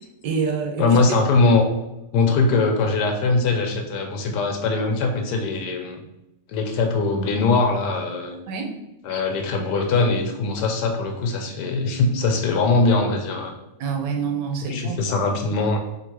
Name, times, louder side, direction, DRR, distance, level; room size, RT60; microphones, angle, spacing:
voice 1, 0.2-1.0 8.5-8.7 13.8-15.0, right 5 dB, 80° right, 3 dB, 1.4 m, -26 dB
voice 2, 0.8-1.6 2.1-6.0 6.5-8.3 9.0-13.5 14.7-15.8, left 3 dB, 75° left, 4 dB, 1.2 m, -21 dB
3.7 x 2.8 x 4.5 m, 0.93 s
omnidirectional pair, 1.9 m